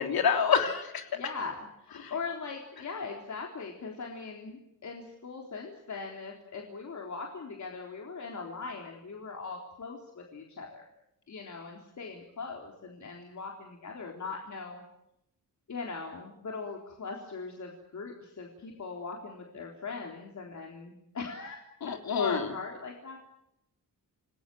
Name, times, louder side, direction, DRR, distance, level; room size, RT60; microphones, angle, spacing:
voice 1, 0.0-1.1 2.0-2.1 21.8-22.5, left 7 dB, 90° left, 5 dB, 3.5 m, -27 dB
voice 2, 1.1-10.8 11.3-14.8 15.7-21.6 21.8-23.2, left 4 dB, 55° left, 1 dB, 3.8 m, -40 dB
29.0 x 20.5 x 7.8 m, 0.80 s
wide cardioid pair, 160°, 35 cm